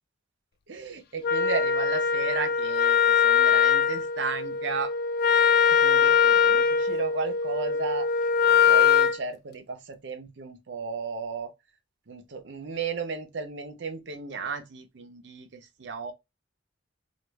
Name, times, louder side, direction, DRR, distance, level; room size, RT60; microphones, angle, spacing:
voice 1, 0.7-4.9 5.7-8.1 8.5-11.5 12.1-16.1, right 5 dB, 65° right, 0.7 m, -34 dB
Wind instrument woodwind instrument, 1.2-9.2, left 7 dB, 55° left, 0.3 m, -22 dB
3.1 x 2.4 x 3.4 m
head